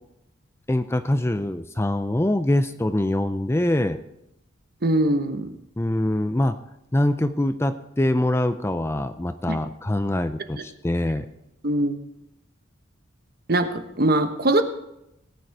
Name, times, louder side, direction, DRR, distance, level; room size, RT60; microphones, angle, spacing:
voice 1, 0.7-4.0 5.8-6.6 6.9-11.3, left 1 dB, 15° left, 10 dB, 0.5 m, -24 dB
voice 2, 4.8-5.5 9.5-9.6 11.6-12.0 13.5-14.6, right 1 dB, 50° right, 8 dB, 1.1 m, -22 dB
18.0 x 9.3 x 4.7 m, 0.84 s
head